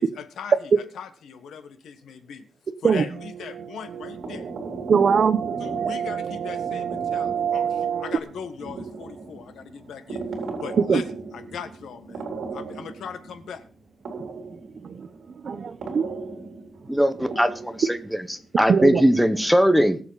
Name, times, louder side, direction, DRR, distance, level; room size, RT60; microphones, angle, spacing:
voice 1, 0.0-2.4 2.8-4.5 5.6-10.2 10.6-11.0 11.3-12.2 12.5-13.6, left 7 dB, 85° left, 1.4 m, -39 dB
sound 1, 3.0-8.2, right 8 dB, 80° right, 0.5 m, -30 dB
sound 2, 4.0-19.5, right 3 dB, 60° right, 3.7 m, -38 dB
voice 2, 4.9-5.9 10.9-11.0 14.8-15.1 15.4-16.1 18.7-19.0, right 6 dB, 45° right, 0.9 m, -21 dB
voice 3, 16.9-20.0, equal, ahead, 1.0 m, -20 dB
21.0 x 7.3 x 4.1 m
wide cardioid pair, 160°, 0 cm